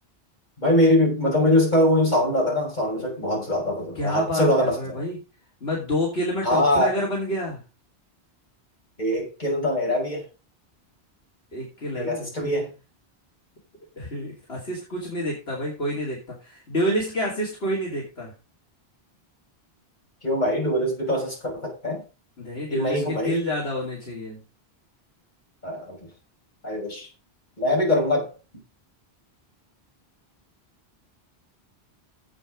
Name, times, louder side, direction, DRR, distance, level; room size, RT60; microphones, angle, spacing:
voice 1, 0.6-5.0 6.4-6.9 9.0-10.2 11.9-12.7 20.2-22.0 22.7-23.5 25.6-26.0 26.6-27.1 27.6-28.3, left 1 dB, 45° left, 6.1 m, -23 dB
voice 2, 3.9-4.4 4.7-5.2 5.6-7.6 11.5-12.3 14.0-18.3 22.4-24.4, left 1 dB, 70° left, 3.4 m, -28 dB
9.9 x 8.1 x 5.1 m
omnidirectional pair, 1.1 m